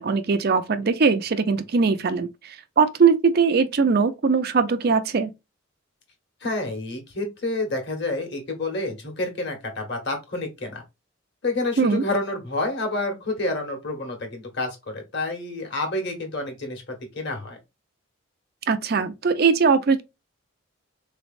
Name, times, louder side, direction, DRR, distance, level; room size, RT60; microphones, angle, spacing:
voice 1, 0.0-5.3 11.8-12.0 18.7-20.0, right 5 dB, 45° right, 0.4 m, -21 dB
voice 2, 6.4-10.8 11.4-16.8 17.1-17.6, left 2 dB, 55° left, 1.5 m, -29 dB
4.0 x 3.2 x 2.5 m
head